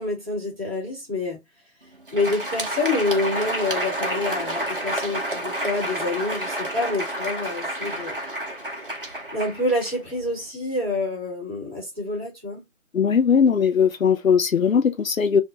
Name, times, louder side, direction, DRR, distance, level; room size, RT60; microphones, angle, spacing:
voice 1, 0.0-1.4 2.1-8.2 9.3-12.6, left 2 dB, 10° left, 0.9 m, -27 dB
Crowd, 1.9-10.4, right 1 dB, 40° right, 0.6 m, -30 dB
voice 2, 12.9-15.4, left 6 dB, 75° left, 0.6 m, -19 dB
2.5 x 2.1 x 3.7 m
figure-of-eight pair, 160°, 41 cm